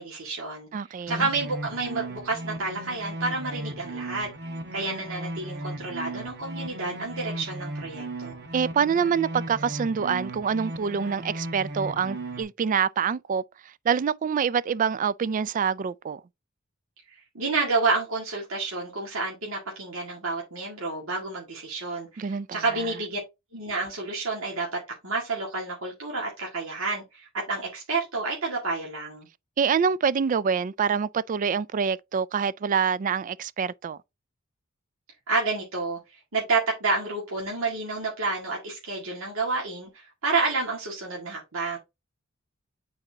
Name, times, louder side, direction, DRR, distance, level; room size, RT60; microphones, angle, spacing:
voice 1, 0.0-0.7 1.1-4.3 4.7-8.4 17.1-23.2 23.5-29.3 35.3-36.0 36.3-41.8, right 3 dB, 85° right, 1.9 m, -29 dB
voice 2, 0.7-1.3 8.5-13.4 13.9-16.2 22.2-22.6 29.6-34.0, right 6 dB, 40° right, 0.3 m, -26 dB
sound 1, 1.1-12.4, right 1 dB, 55° right, 1.1 m, -36 dB
9.0 x 4.2 x 2.8 m
head